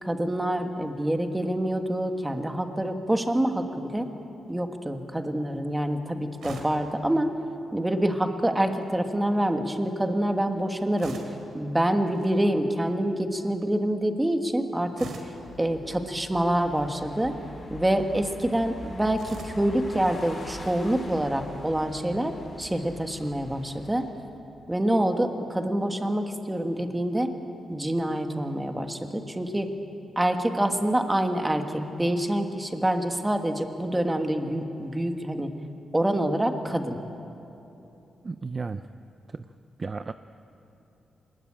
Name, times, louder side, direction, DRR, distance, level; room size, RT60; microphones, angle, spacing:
voice 1, 0.0-4.1 4.5-7.3 7.7-11.1 11.5-15.1 15.6-17.3 17.7-24.0 24.7-27.3 27.7-29.7 30.1-35.5 35.9-37.0, right 1 dB, 10° right, 5 dB, 1.5 m, -26 dB
sound 1, 6.4-6.9 8.5-8.9 11.0-11.5 12.1-12.3 14.9-15.4 16.7-17.1 19.1-19.7, right 3 dB, 75° right, 3.5 m, -42 dB
sound 2, 15.3-24.1, left 2 dB, 35° left, 5.4 m, -44 dB
voice 2, 38.2-38.8 39.3-39.5 39.8-40.1, right 4 dB, 30° right, 10 dB, 0.5 m, -33 dB
26.0 x 20.0 x 8.8 m, 2.9 s
wide cardioid pair, 165°, 0 cm